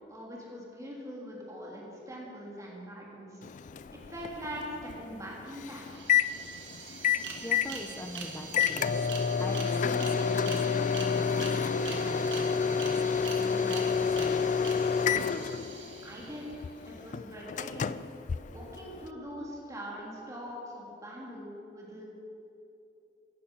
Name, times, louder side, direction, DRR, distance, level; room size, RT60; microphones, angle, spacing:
voice 1, 0.1-3.4 4.1-6.0 16.0-16.6 16.9-18.0 18.5-22.1, equal, 20° right, -4 dB, 3.4 m, -42 dB
Microwave oven, 3.4-19.1, left 6 dB, 45° left, 0.3 m, -30 dB
sound 1, 5.5-5.6 5.8-16.6, right 5 dB, 75° right, 2.0 m, -43 dB
voice 2, 7.4-8.9 9.4-14.5, left 1 dB, 15° left, 5 dB, 0.9 m, -43 dB
15.5 x 11.5 x 5.6 m, 2.9 s
head